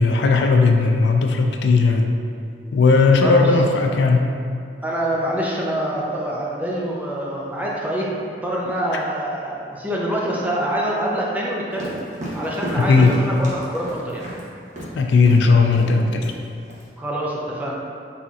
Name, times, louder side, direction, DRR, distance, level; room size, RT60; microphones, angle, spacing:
voice 1, 0.0-2.1 2.7-4.2 12.9-13.1 14.9-16.3, left 4 dB, 75° left, 3 dB, 0.4 m, -16 dB
voice 2, 4.8-8.1 8.4-11.9 12.3-14.3 17.0-17.7, right 1 dB, 10° right, -4 dB, 0.5 m, -25 dB
sound 1, 11.7-14.4 14.8-14.9 15.3-15.4 15.7-16.8, equal, 45° right, 0.8 m, -31 dB
4.2 x 4.1 x 2.4 m, 2.3 s
head